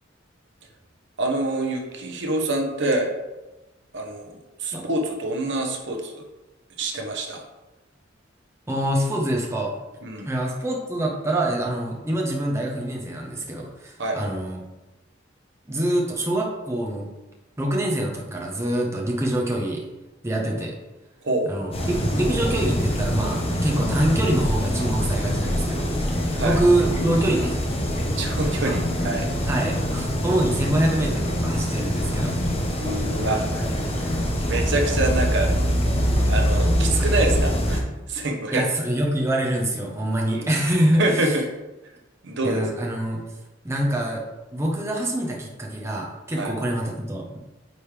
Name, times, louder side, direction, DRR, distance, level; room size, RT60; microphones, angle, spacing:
voice 1, 1.2-3.1 3.9-6.2 6.8-7.4 10.0-10.3 14.0-14.2 21.2-21.5 26.3-26.6 28.2-29.3 32.8-33.7 34.0-35.5 36.3-38.6 40.3-40.5 41.0-41.5 42.2-42.7 46.4-46.5, right 2 dB, 65° right, 2 dB, 1.0 m, -26 dB
voice 2, 8.7-9.7 10.3-14.6 15.7-17.1 17.6-19.9 20.2-20.8 21.4-27.6 28.6-28.8 29.5-32.3 38.5-41.3 42.4-43.2 43.6-44.2 44.5-47.4, right 1 dB, 15° right, -2 dB, 0.9 m, -25 dB
sound 1, 21.7-37.8, equal, 30° left, 1.0 m, -24 dB
9.3 x 3.6 x 3.3 m, 1.1 s
head